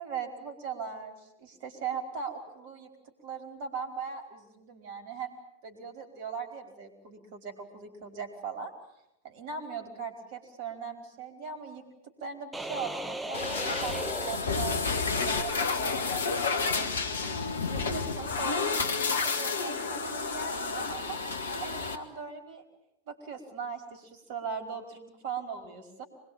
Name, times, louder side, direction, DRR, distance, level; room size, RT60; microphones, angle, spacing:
voice 1, 0.0-2.9 3.2-5.3 5.6-8.7 9.2-11.8 12.2-16.0 16.5-17.0 17.5-21.2 21.6-22.6 23.1-26.1, right 6 dB, 50° right, 6 dB, 5.0 m, -39 dB
sound 1, 12.5-15.2, right 1 dB, 5° right, 1.7 m, -37 dB
sound 2, 13.3-21.9, left 4 dB, 65° left, 2.0 m, -30 dB
25.5 x 21.5 x 9.0 m, 0.84 s
figure-of-eight pair, 90°, 0 cm